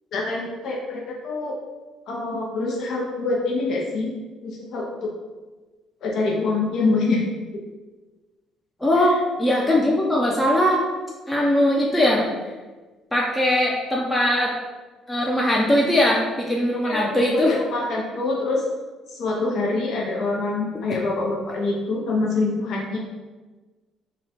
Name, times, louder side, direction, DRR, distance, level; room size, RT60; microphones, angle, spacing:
voice 1, 0.1-1.5 2.1-4.1 4.4-5.1 6.0-7.2 9.0-9.1 16.8-18.6 19.1-23.0, left 3 dB, 65° left, -2 dB, 0.7 m, -25 dB
voice 2, 8.8-10.8 11.3-12.2 13.1-14.5 15.1-17.5, left 1 dB, 10° left, -3 dB, 0.6 m, -20 dB
3.0 x 2.3 x 4.1 m, 1.3 s
supercardioid pair, 65°, 0 cm